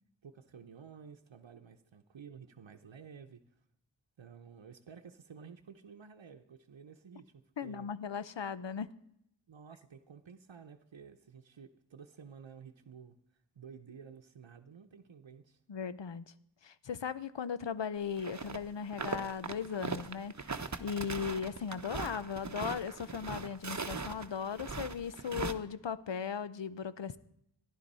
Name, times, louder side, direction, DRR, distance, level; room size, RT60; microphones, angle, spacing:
voice 1, 0.2-3.4 4.2-7.9 9.5-13.2 13.6-15.6, right 6 dB, 90° right, 3 dB, 0.8 m, -52 dB
voice 2, 7.6-8.9 15.7-16.2 16.6-27.2, left 7 dB, 75° left, 15 dB, 0.8 m, -37 dB
sound 1, 18.2-18.6 18.8-25.5, right 4 dB, 40° right, 1.0 m, -40 dB
14.5 x 11.0 x 5.5 m, 0.75 s
wide cardioid pair, 60°, 44 cm